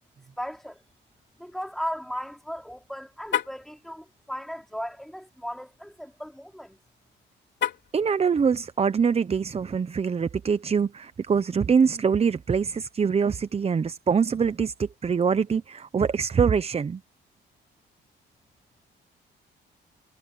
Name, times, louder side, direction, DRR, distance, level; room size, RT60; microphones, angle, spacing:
voice 1, 0.4-0.8 1.4-6.8, equal, ahead, 4.6 m, -36 dB
Car, 3.2-3.7 7.5-8.0, left 9 dB, 65° left, 3.0 m, -29 dB
voice 2, 7.9-17.0, right 6 dB, 30° right, 0.7 m, -24 dB
cardioid pair, 90°, 20 cm